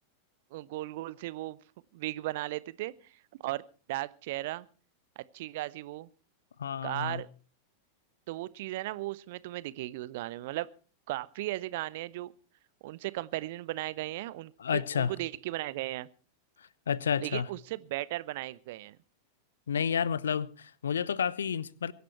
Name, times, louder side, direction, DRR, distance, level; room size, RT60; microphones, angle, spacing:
voice 1, 0.5-1.6 1.9-3.6 3.9-4.7 5.2-6.1 6.8-7.3 8.3-10.7 11.1-12.3 12.8-16.1 17.2-19.0, right 17 dB, 50° right, 0.8 m, -36 dB
voice 2, 6.6-7.2 14.6-15.1 16.9-17.5 19.7-21.9, left 7 dB, 65° left, 0.8 m, -30 dB
23.0 x 11.5 x 4.4 m
figure-of-eight pair, 90°, 0 cm